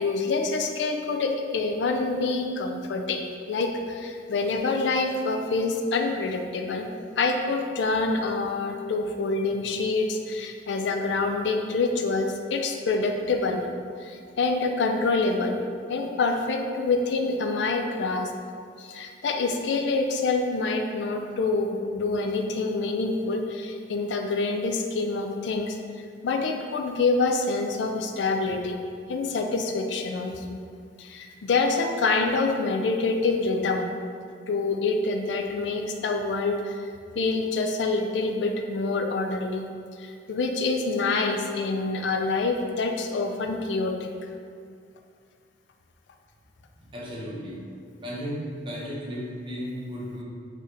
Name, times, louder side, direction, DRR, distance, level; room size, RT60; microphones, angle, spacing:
voice 1, 0.0-6.9 7.2-13.6 14.0-15.6 15.9-18.3 18.8-25.8 26.2-28.8 29.1-30.6 31.0-33.9 34.5-36.9 37.2-39.7 40.0-44.1, left 3 dB, 70° left, 4 dB, 0.4 m, -26 dB
voice 2, 46.9-47.6 48.0-50.2, equal, 30° right, -5 dB, 0.8 m, -34 dB
4.5 x 3.2 x 3.4 m, 2.3 s
head